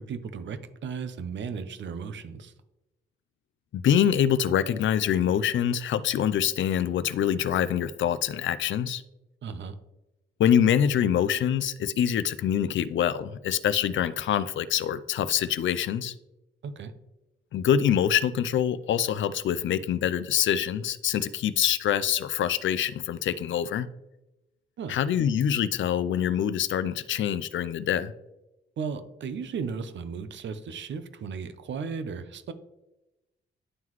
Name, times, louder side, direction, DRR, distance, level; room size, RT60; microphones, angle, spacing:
voice 1, 0.1-2.5 9.4-9.7 16.6-16.9 24.8-25.0 28.8-32.5, right 6 dB, 65° right, 11 dB, 0.6 m, -35 dB
voice 2, 3.7-9.0 10.4-16.1 17.5-23.9 24.9-28.1, left 9 dB, 70° left, 14 dB, 0.4 m, -25 dB
11.0 x 3.8 x 3.0 m, 0.96 s
wide cardioid pair, 135°, 20 cm